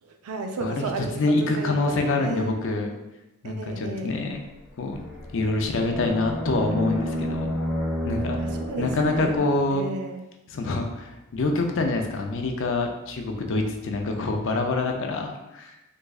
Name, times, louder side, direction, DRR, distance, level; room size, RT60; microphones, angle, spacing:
voice 1, 0.0-2.6 3.4-4.2 8.4-9.4 9.7-10.2, right 3 dB, 80° right, 5 dB, 0.4 m, -34 dB
voice 2, 0.6-2.9 3.4-4.4 4.8-5.0 5.3-7.5 8.1-8.4 8.8-9.8 10.5-15.8, left 2 dB, 60° left, 3 dB, 0.5 m, -26 dB
sound 1, 4.9-9.4, equal, ahead, 0.5 m, -30 dB
3.5 x 3.0 x 2.4 m, 0.95 s
head